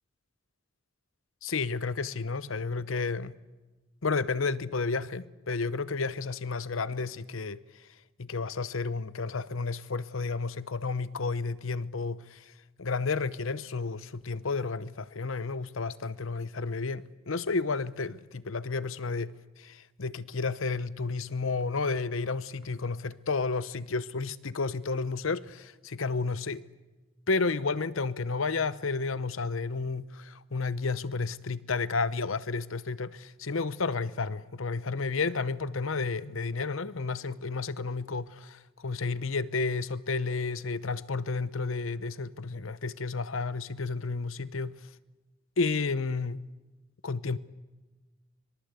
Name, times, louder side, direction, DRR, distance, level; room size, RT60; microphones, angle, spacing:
voice 1, 1.4-3.4 4.0-7.8 8.2-12.5 12.8-26.6 27.3-44.8 45.6-46.5 47.0-47.4, left 4 dB, 85° left, 0.9 m, -31 dB
24.5 x 22.5 x 8.2 m
head